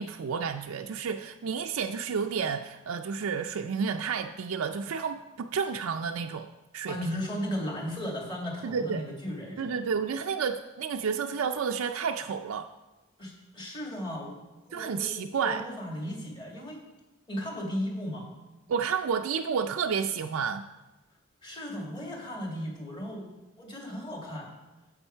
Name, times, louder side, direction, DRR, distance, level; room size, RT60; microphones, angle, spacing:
voice 1, 0.0-6.5 6.7-7.0 8.6-9.0 9.6-12.7 14.7-15.6 18.7-20.6, right 6 dB, 85° right, 5 dB, 0.4 m, -30 dB
voice 2, 6.9-9.8 13.2-14.3 14.7-16.8 17.3-18.3 21.4-23.3 23.6-24.5, equal, 25° left, -1 dB, 2.2 m, -36 dB
9.9 x 7.9 x 4.4 m, 1.1 s
head